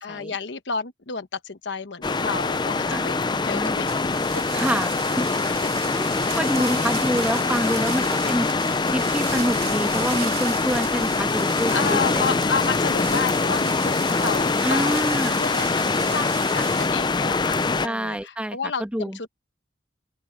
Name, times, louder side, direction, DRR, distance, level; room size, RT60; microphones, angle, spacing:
voice 1, 0.0-3.2 3.4-4.1 4.3-4.4 5.6-5.7 6.1-6.7 11.7-15.0 15.4-15.8 16.1-17.6 17.8-19.3, left 5 dB, 70° left, 1.1 m, -31 dB
sound 1, 2.0-17.9, left 4 dB, 25° left, 0.5 m, -24 dB
voice 2, 2.9-3.8 4.5-5.3 5.9-8.5 8.9-12.2 14.6-15.4 17.8-19.2, equal, 5° right, 1.8 m, -27 dB
sound 2, 3.9-16.9, right 10 dB, 55° right, 2.9 m, -37 dB
open air
head